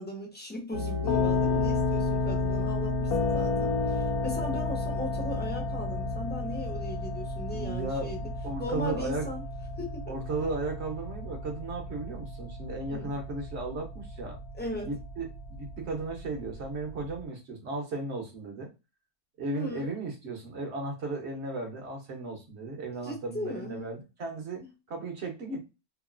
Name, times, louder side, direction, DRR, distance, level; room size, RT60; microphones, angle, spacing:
voice 1, 0.0-8.2 8.6-9.4 9.8-10.1 12.9-13.1 14.6-14.9 19.5-19.9 23.0-23.9, left 1 dB, 10° left, 0.6 m, -38 dB
sound 1, 0.7-17.2, left 3 dB, 80° left, 1.2 m, -32 dB
voice 2, 7.5-8.1 8.4-9.4 10.1-14.4 14.8-18.7 19.4-24.6 24.9-25.7, right 3 dB, 50° right, 1.0 m, -35 dB
3.0 x 2.5 x 2.4 m
omnidirectional pair, 1.6 m